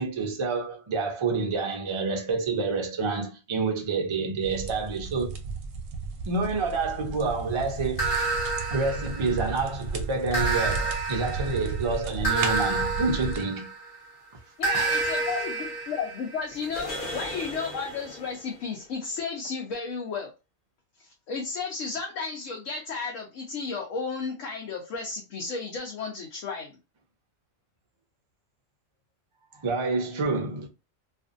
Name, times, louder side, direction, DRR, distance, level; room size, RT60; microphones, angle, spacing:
voice 1, 0.0-5.4 6.3-8.2 8.7-13.7 29.5-30.7, right 3 dB, 50° right, 0.3 m, -28 dB
sound 1, 4.4-13.4, right 4 dB, 65° right, 0.8 m, -34 dB
sound 2, 8.0-9.7 10.3-14.0 14.6-18.3, right 3 dB, 45° left, 0.9 m, -30 dB
voice 2, 14.6-20.3 21.3-26.7 30.2-30.3, left 5 dB, 75° left, 1.0 m, -33 dB
2.6 x 2.5 x 2.4 m
omnidirectional pair, 1.3 m